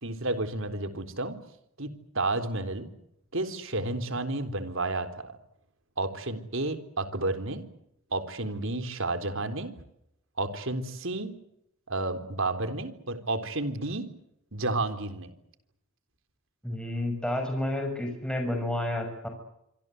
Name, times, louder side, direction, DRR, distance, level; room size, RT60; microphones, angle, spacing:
voice 1, 0.0-1.4 1.8-2.9 3.3-5.4 6.0-7.7 8.1-9.7 10.4-11.3 11.9-14.1 14.5-15.3, right 2 dB, 60° right, 9 dB, 3.9 m, -31 dB
voice 2, 16.6-19.3, left 1 dB, 5° left, 3 dB, 6.6 m, -30 dB
26.5 x 25.0 x 8.0 m, 0.79 s
head